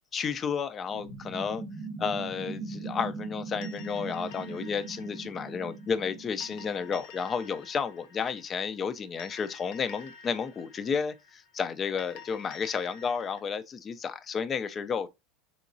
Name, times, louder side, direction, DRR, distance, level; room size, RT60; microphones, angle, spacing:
voice 1, 0.1-1.6 2.0-15.1, left 6 dB, 30° left, 0.4 m, -32 dB
sound 1, 0.9-7.0, right 3 dB, 35° right, 0.8 m, -40 dB
sound 2, 3.6-13.4, left 5 dB, 70° left, 0.6 m, -50 dB
3.6 x 3.0 x 2.5 m
supercardioid pair, 120°, 0 cm